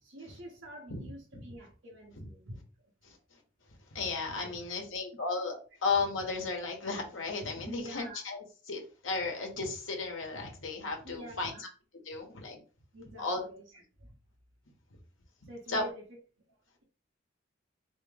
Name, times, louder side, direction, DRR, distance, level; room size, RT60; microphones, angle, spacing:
voice 1, 0.0-2.6 3.1-3.2 7.6-8.2 11.0-11.6 12.9-14.2 15.5-16.0, equal, 75° right, -6 dB, 1.1 m, -47 dB
voice 2, 3.9-11.5 12.1-12.6 13.2-13.4 15.7-15.8, left 3 dB, 85° left, 2 dB, 1.1 m, -34 dB
3.4 x 3.0 x 3.3 m, 0.36 s
head